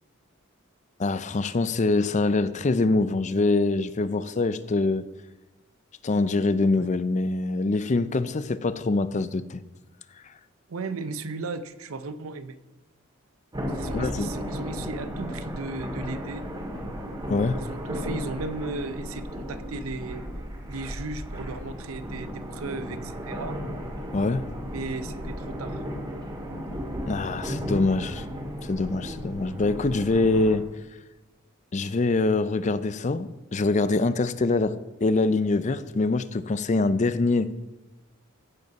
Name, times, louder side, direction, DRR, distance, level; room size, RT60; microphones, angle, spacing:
voice 1, 1.0-5.0 6.0-9.6 13.9-14.3 17.3-17.6 24.1-24.5 27.1-28.2 28.6-30.7 31.7-37.5, left 3 dB, 35° left, 0.5 m, -24 dB
voice 2, 10.7-12.6 13.7-16.4 17.6-20.3 20.7-23.6 24.7-25.8, right 3 dB, 85° right, 0.7 m, -36 dB
sound 1, 13.5-30.6, equal, 20° right, 2.1 m, -35 dB
16.0 x 5.4 x 5.9 m
head